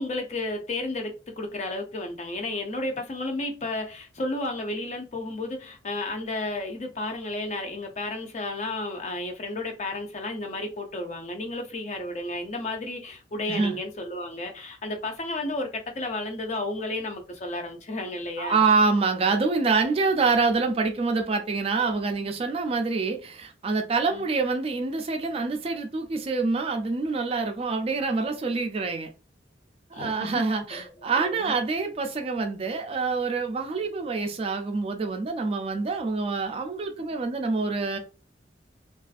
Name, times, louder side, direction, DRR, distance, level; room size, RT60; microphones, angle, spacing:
voice 1, 0.0-18.7 24.1-24.3 29.9-30.4 30.7-31.6 33.7-33.9, left 2 dB, 40° left, 0.5 m, -32 dB
voice 2, 18.4-29.1 29.9-38.0, right 4 dB, 30° right, 0.3 m, -26 dB
2.4 x 2.3 x 2.4 m
head